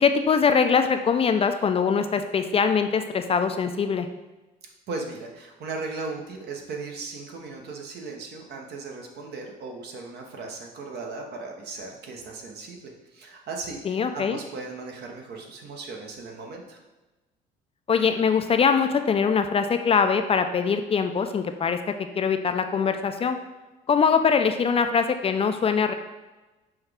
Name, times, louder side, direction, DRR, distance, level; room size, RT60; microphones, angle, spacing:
voice 1, 0.0-4.1 13.9-14.4 17.9-23.4 23.9-25.9, left 6 dB, 30° left, 7 dB, 0.3 m, -22 dB
voice 2, 4.9-16.8, right 3 dB, 60° right, 1 dB, 0.9 m, -37 dB
5.7 x 2.3 x 3.3 m, 1.1 s
supercardioid pair, 75°, 19 cm